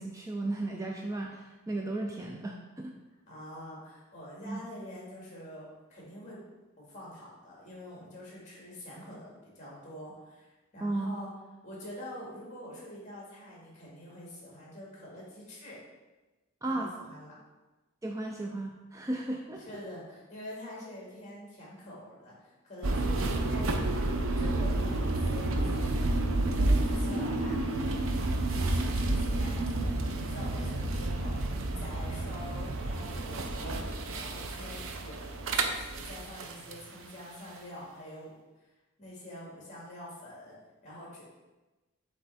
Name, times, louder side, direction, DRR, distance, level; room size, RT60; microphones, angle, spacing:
voice 1, 0.0-2.9 4.4-4.6 10.8-11.2 16.6-16.9 18.0-19.6, right 2 dB, 15° right, 1 dB, 0.4 m, -35 dB
voice 2, 3.3-6.4 6.8-11.3 11.6-15.8 16.6-17.3 19.7-24.1 24.4-27.6 28.5-38.3 39.0-40.6 40.8-41.2, left 1 dB, 35° left, -5 dB, 2.2 m, -46 dB
sound 1, 22.8-36.8, right 2 dB, 75° right, 0.6 m, -30 dB
7.7 x 3.3 x 4.1 m, 1.1 s
head